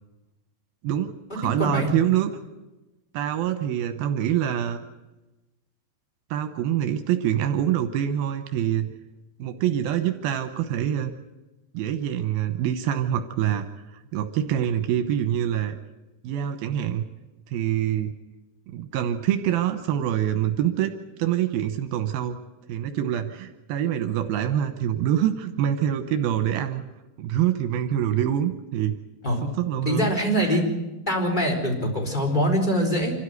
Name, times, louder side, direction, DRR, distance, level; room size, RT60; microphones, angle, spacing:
voice 1, 0.8-2.3 3.1-4.8 6.3-8.9 9.4-11.1 11.7-13.7 13.9-15.8 16.2-17.0 17.5-18.1 18.7-20.9 21.2-22.4 22.7-26.8 27.2-28.9 29.4-30.1 30.4-30.6, right 10 dB, 85° right, 8 dB, 2.8 m, -25 dB
voice 2, 1.6-1.9 29.2-29.4 29.9-30.6 31.1-33.1, equal, 10° left, 1 dB, 4.2 m, -23 dB
26.0 x 13.0 x 9.5 m, 1.1 s
omnidirectional pair, 4.2 m